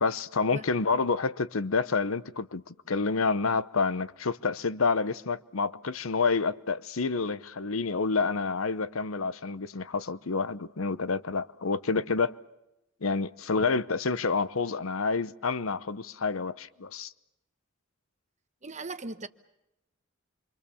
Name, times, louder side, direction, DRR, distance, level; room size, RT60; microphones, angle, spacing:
voice 1, 0.0-12.4 13.0-17.1, left 4 dB, 80° left, 0.9 m, -28 dB
voice 2, 18.6-19.3, right 3 dB, 35° right, 1.2 m, -38 dB
28.0 x 25.0 x 7.1 m
head